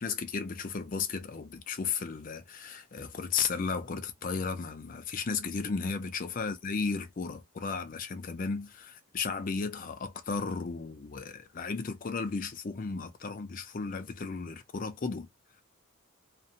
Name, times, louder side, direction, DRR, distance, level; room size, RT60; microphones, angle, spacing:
voice 1, 0.0-15.3, left 5 dB, 40° left, 0.4 m, -34 dB
2.6 x 2.1 x 2.7 m
head